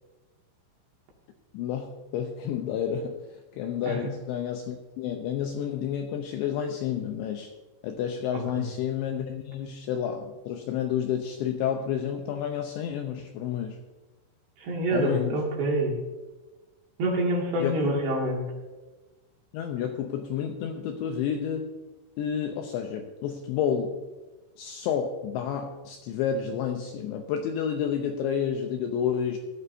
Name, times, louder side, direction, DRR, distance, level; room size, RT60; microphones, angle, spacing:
voice 1, 1.5-3.2 3.5-7.5 7.8-13.8 14.9-15.4 17.6-18.0 19.5-21.7 22.2-23.9 24.6-29.4, left 8 dB, 80° left, 4 dB, 2.6 m, -30 dB
voice 2, 14.6-15.9 17.0-18.4, right 1 dB, 60° right, -2 dB, 3.9 m, -26 dB
17.5 x 12.0 x 2.7 m, 1.2 s
omnidirectional pair, 5.9 m